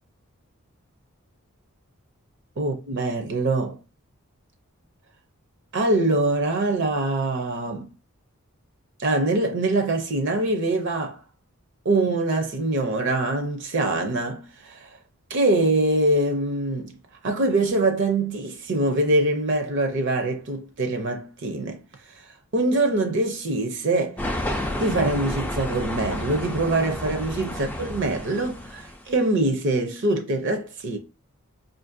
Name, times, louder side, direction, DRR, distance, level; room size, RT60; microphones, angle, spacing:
voice 1, 2.6-3.8 5.7-7.9 9.0-11.2 11.8-14.9 15.3-16.9 17.2-21.8 22.5-24.2 24.7-31.0, right 2 dB, 50° right, 0.5 m, -24 dB
sound 1, 24.2-29.1, left 1 dB, 5° left, 0.3 m, -31 dB
4.9 x 2.5 x 2.6 m
head